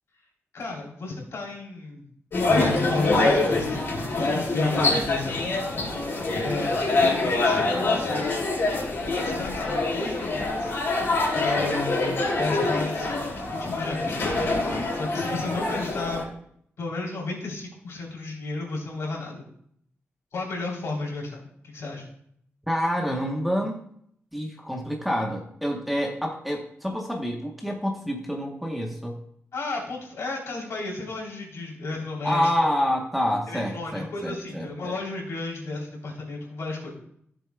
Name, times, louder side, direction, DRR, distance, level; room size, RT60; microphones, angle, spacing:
voice 1, 0.5-2.1 2.5-5.4 6.0-6.7 7.0-8.3 9.2-10.7 11.3-14.2 14.6-16.2 16.8-19.5 20.3-22.1 29.5-32.5 33.5-36.9, left 3 dB, 70° left, -2 dB, 3.5 m, -33 dB
sound 1, 2.3-16.2, left 2 dB, 55° left, 3.5 m, -25 dB
voice 2, 22.7-23.8 24.3-29.2 32.2-34.9, equal, ahead, -1 dB, 1.0 m, -27 dB
15.5 x 7.1 x 2.3 m, 0.67 s
wide cardioid pair, 165°, 5 cm